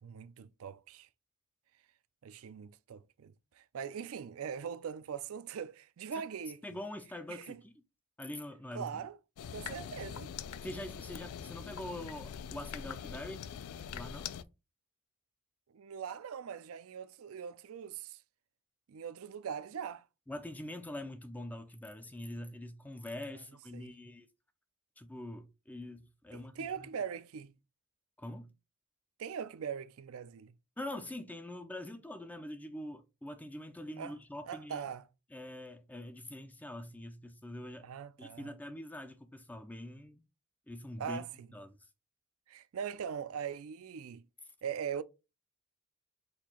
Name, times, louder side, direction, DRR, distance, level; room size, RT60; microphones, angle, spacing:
voice 1, 0.0-1.1 2.2-6.6 7.3-7.6 8.7-9.2 9.5-10.3 15.7-18.2 18.9-20.0 23.7-23.9 26.3-27.5 29.2-30.5 34.0-34.1 34.5-35.0 37.8-38.5 41.0-41.3 42.5-44.2 44.6-45.0, right 7 dB, 65° right, 0.4 m, -41 dB
voice 2, 6.6-7.7 8.2-9.0 10.6-13.5 13.9-14.3 20.3-24.3 25.0-26.9 28.2-28.5 30.8-34.9 35.3-37.9 38.2-40.2 40.7-41.2 41.5-41.8, left 1 dB, 5° left, 0.3 m, -44 dB
sound 1, 9.4-14.4, left 8 dB, 80° left, 0.4 m, -43 dB
4.3 x 2.7 x 4.2 m
head